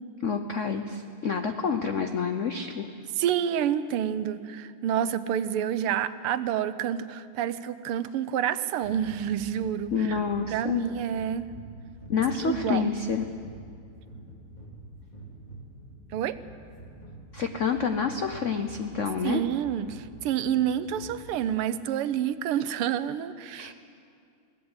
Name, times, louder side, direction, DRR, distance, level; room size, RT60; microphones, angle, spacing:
voice 1, 0.2-2.9 9.9-10.9 12.1-13.2 17.3-19.4 23.6-23.7, left 6 dB, 75° left, 7 dB, 0.7 m, -28 dB
voice 2, 3.2-10.2 10.5-11.5 12.4-12.9 16.1-16.4 19.2-23.7, right 9 dB, 85° right, 13 dB, 1.7 m, -28 dB
sound 1, 8.8-21.5, right 1 dB, 20° left, 3.5 m, -47 dB
21.5 x 17.0 x 7.9 m, 2.3 s
omnidirectional pair, 2.4 m